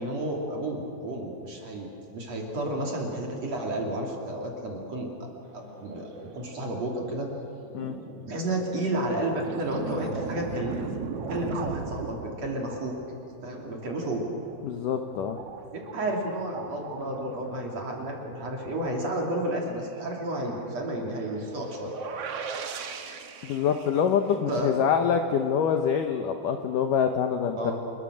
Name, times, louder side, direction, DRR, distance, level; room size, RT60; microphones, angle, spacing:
voice 1, 0.0-7.3 8.2-13.0 13.4-14.3 15.9-21.9 24.5-24.9 27.6-27.8, right 1 dB, 40° right, 0 dB, 3.7 m, -31 dB
sound 1, 5.5-6.8 7.3-7.4 7.6-19.0 19.4-19.5 19.7-24.6, right 5 dB, 75° right, 1.4 m, -39 dB
voice 2, 14.6-15.4 23.4-27.6, left 7 dB, 75° left, 6 dB, 2.0 m, -25 dB
28.5 x 22.0 x 6.5 m, 2.8 s
omnidirectional pair, 5.1 m